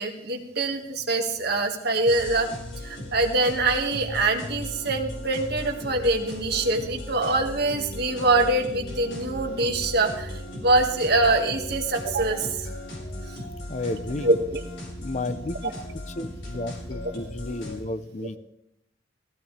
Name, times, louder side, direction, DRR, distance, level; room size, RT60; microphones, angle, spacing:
voice 1, 0.0-2.5 2.8-12.7 14.2-14.6, right 2 dB, 60° right, 2 dB, 2.0 m, -24 dB
sound 1, 2.0-17.8, left 1 dB, 80° left, 5.5 m, -37 dB
voice 2, 13.7-14.3 15.0-15.7 16.1-18.4, left 2 dB, 40° left, 12 dB, 0.8 m, -32 dB
16.0 x 15.5 x 3.4 m, 0.79 s
head